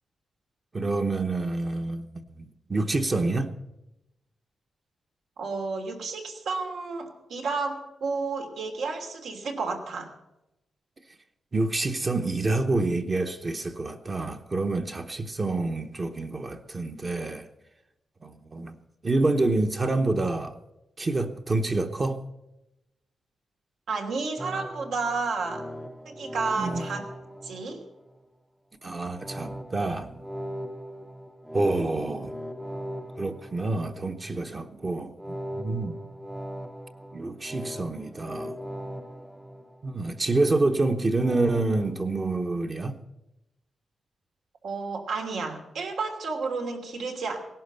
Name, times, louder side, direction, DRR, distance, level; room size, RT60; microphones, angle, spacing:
voice 1, 0.7-3.5 11.5-17.5 18.2-18.8 19.0-20.6 21.0-22.2 26.6-26.8 28.8-30.2 31.5-32.3 33.2-36.0 37.1-38.6 39.8-42.9, right 2 dB, 30° right, 0.9 m, -27 dB
voice 2, 5.4-10.1 23.9-25.6 26.0-27.1 27.4-27.9 44.6-47.4, right 4 dB, 85° right, 3.0 m, -31 dB
sound 1, 24.4-28.2 29.2-34.2 35.2-40.2 41.2-41.9, equal, 5° right, 0.6 m, -39 dB
18.0 x 11.5 x 6.8 m
wide cardioid pair, 140°, 0 cm